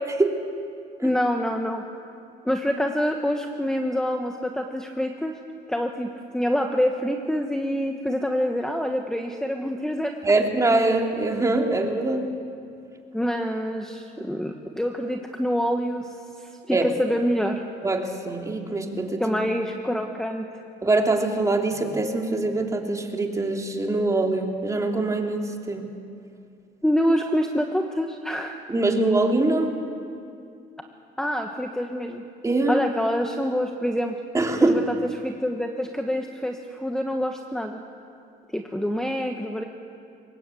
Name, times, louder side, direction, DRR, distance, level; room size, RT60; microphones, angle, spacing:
voice 1, 0.1-0.4 1.0-1.1 10.2-12.3 16.7-16.9 17.8-19.4 20.8-25.9 28.7-29.7 32.4-32.8 34.3-34.8, right 2 dB, 20° right, 2 dB, 2.8 m, -23 dB
voice 2, 1.0-1.8 2.4-5.3 5.7-10.2 13.1-17.6 19.2-20.5 26.8-28.6 31.2-32.2 32.7-34.2 34.6-34.9 35.2-37.8 38.5-39.7, equal, 5° left, 4 dB, 1.3 m, -26 dB
24.0 x 20.0 x 8.4 m, 2.5 s
cardioid pair, 110°, 17 cm